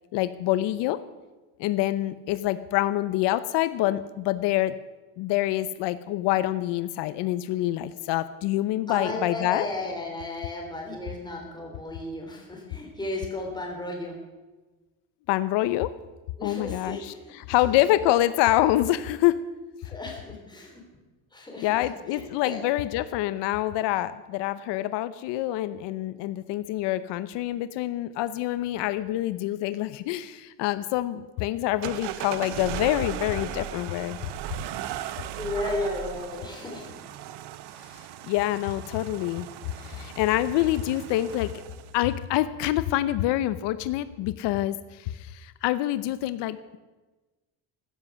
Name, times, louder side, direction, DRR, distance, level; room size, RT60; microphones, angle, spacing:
voice 1, 0.1-1.0 1.6-4.8 5.2-9.7 15.3-15.9 16.4-17.1 17.5-19.4 21.6-34.2 37.9-39.5 39.8-41.6 41.9-46.8, left 14 dB, 80° left, 14 dB, 0.8 m, -26 dB
voice 2, 8.9-14.2 16.4-17.4 19.8-20.8 21.3-21.7 22.1-22.6 35.4-36.9, left 2 dB, 10° left, 0 dB, 3.7 m, -34 dB
sound 1, 31.8-42.0, right 11 dB, 70° right, 1.1 m, -37 dB
15.5 x 13.5 x 6.3 m, 1.2 s
cardioid pair, 170°, 41 cm